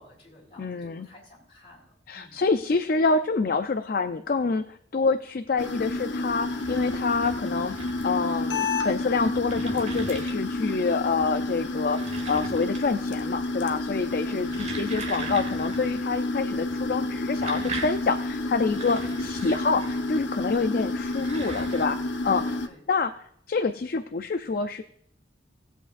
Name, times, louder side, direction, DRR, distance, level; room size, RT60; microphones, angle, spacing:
voice 1, 0.0-2.5 10.6-10.8 14.2-14.8 18.9-19.4 21.4-21.8 22.3-22.8, left 1 dB, 35° left, -3 dB, 4.0 m, -51 dB
voice 2, 0.6-1.1 2.1-7.8 8.0-12.0 12.3-22.0 22.2-22.6 22.9-23.1 23.5-24.8, left 4 dB, 50° left, 8 dB, 0.4 m, -27 dB
sound 1, 5.6-22.7, left 2 dB, 85° left, 0.8 m, -30 dB
sound 2, 6.3-8.3 9.0-10.7 11.6-13.1 13.4-13.8 14.3-16.0 16.2-16.3 17.1-20.2 20.9-21.9, right 2 dB, 40° right, 1.5 m, -40 dB
18.5 x 8.0 x 2.5 m, 0.72 s
head